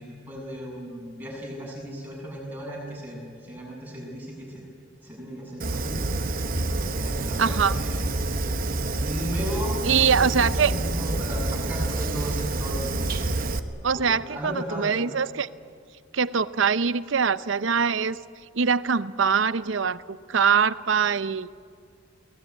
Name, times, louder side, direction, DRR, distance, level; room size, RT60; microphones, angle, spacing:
voice 1, 0.0-4.6 5.0-6.0 6.9-7.9 9.0-13.0 13.9-15.0, equal, 10° right, -3 dB, 7.4 m, -35 dB
Fire, 5.6-13.6, right 2 dB, 45° right, 1.1 m, -27 dB
voice 2, 7.4-7.7 9.8-10.7 13.8-15.5 16.1-18.2 18.5-21.5, right 6 dB, 65° right, 16 dB, 0.6 m, -23 dB
23.5 x 18.5 x 9.4 m, 2.2 s
head